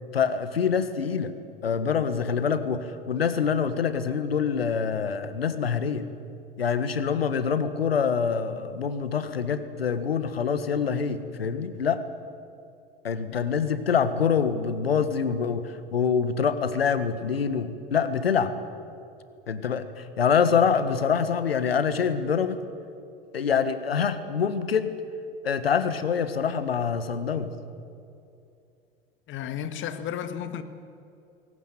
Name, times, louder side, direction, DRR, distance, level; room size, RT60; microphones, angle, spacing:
voice 1, 0.1-1.3 1.6-6.1 6.6-12.0 13.0-18.5 19.5-22.6 23.3-24.9 25.4-27.5, left 6 dB, 80° left, 12 dB, 1.6 m, -25 dB
voice 2, 29.3-30.6, left 9 dB, 40° left, 10 dB, 1.9 m, -33 dB
22.0 x 18.0 x 9.4 m, 2.6 s
figure-of-eight pair, 85°, 30 cm